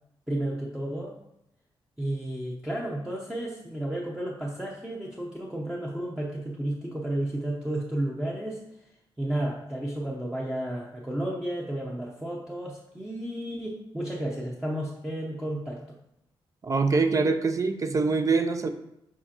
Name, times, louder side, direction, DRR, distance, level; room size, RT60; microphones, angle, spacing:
voice 1, 0.3-1.2 2.0-8.6 9.2-16.0, right 1 dB, 5° right, -3 dB, 0.8 m, -32 dB
voice 2, 16.6-18.7, right 4 dB, 35° right, 9 dB, 0.5 m, -24 dB
7.3 x 4.9 x 2.9 m, 0.82 s
wide cardioid pair, 120°, 9 cm